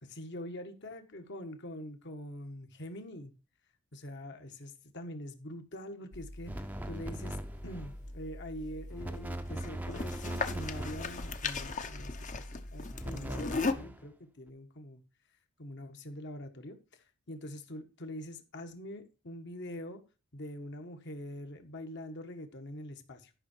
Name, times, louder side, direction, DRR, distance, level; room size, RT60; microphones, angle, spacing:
voice 1, 0.0-3.3 3.9-15.0 15.6-20.0 20.3-23.3, left 1 dB, 55° left, 1.5 m, -44 dB
sound 1, 6.1-13.7, left 3 dB, 35° left, 0.9 m, -38 dB
sound 2, 6.5-8.0 8.9-11.5 12.9-14.1, right 1 dB, 10° right, 0.6 m, -41 dB
12.0 x 5.8 x 4.5 m
head